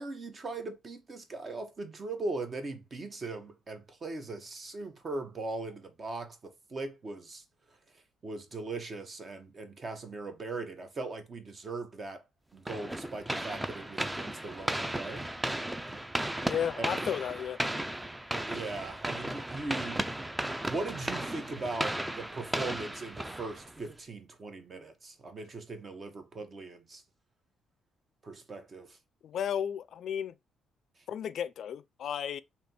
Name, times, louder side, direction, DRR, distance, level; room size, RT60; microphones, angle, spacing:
voice 1, 0.0-7.4 8.2-12.2 12.5-15.3 16.8-16.9 18.3-20.0 20.7-27.0 28.2-29.0, right 3 dB, 40° right, 1.0 m, -39 dB
sound 1, 12.7-23.9, right 1 dB, 10° right, 0.5 m, -35 dB
voice 2, 16.5-17.6 29.2-30.3 31.1-32.4, left 9 dB, 65° left, 0.3 m, -33 dB
3.3 x 2.8 x 4.2 m
cardioid pair, 90°, 0 cm